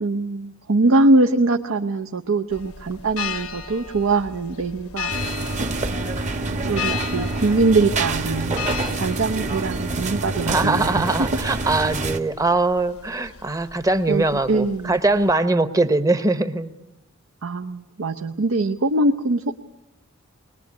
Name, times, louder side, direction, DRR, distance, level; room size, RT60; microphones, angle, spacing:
voice 1, 0.0-5.1 6.6-8.6 9.0-11.0 14.1-15.0 17.4-19.5, right 2 dB, 70° right, 6 dB, 0.8 m, -22 dB
sound 1, 2.5-15.3, left 7 dB, 80° left, 1.0 m, -36 dB
sound 2, 5.1-12.2, right 2 dB, 35° right, 1.2 m, -26 dB
voice 2, 10.5-16.7, right 2 dB, 15° right, 11 dB, 0.9 m, -21 dB
21.5 x 20.0 x 9.5 m, 0.96 s
head